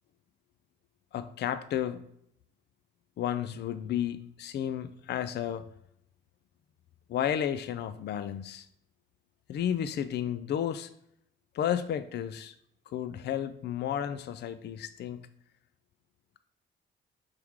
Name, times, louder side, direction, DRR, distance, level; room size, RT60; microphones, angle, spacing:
voice 1, 1.1-2.0 3.2-5.7 7.1-8.7 9.5-10.9 11.5-12.5 12.9-15.3, left 10 dB, 60° left, 13 dB, 0.5 m, -32 dB
6.0 x 4.9 x 3.6 m, 0.72 s
cardioid pair, 90°, 20 cm